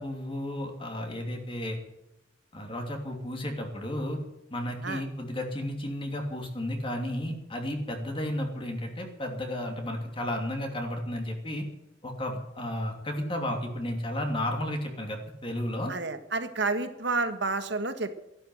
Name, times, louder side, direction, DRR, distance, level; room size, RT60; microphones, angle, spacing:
voice 1, 0.0-1.8 2.5-4.2 4.5-11.6 12.0-15.9, left 1 dB, 30° left, 2 dB, 2.8 m, -33 dB
voice 2, 15.9-18.1, right 3 dB, 60° right, 9 dB, 1.5 m, -30 dB
14.5 x 11.5 x 7.8 m, 0.89 s
head